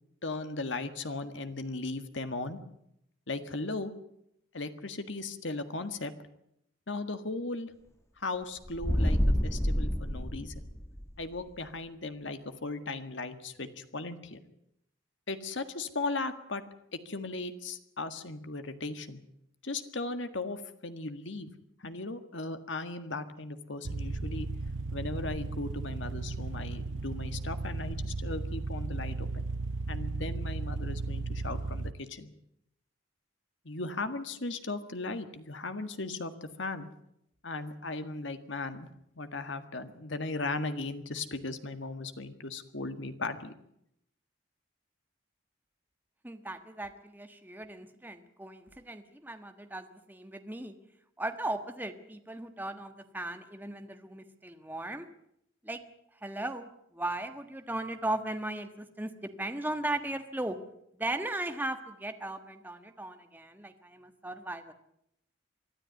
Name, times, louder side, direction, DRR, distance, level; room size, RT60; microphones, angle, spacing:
voice 1, 0.2-2.6 3.3-3.9 4.5-6.1 6.9-7.7 8.2-10.6 11.2-14.4 15.3-16.6 16.9-19.2 19.6-21.5 21.8-24.5 24.9-29.5 29.9-32.3 33.7-36.9 37.4-38.9 39.2-43.5, left 3 dB, 65° left, 9 dB, 1.8 m, -37 dB
sound 1, 8.6-11.1, equal, 15° left, 1.5 m, -28 dB
sound 2, 23.8-31.9, right 3 dB, 70° right, 0.7 m, -35 dB
voice 2, 46.2-50.7 51.2-55.1 55.6-55.8 56.2-59.1 59.4-60.6 61.0-64.7, right 1 dB, 10° right, 7 dB, 1.4 m, -37 dB
23.5 x 12.5 x 9.4 m, 0.77 s
head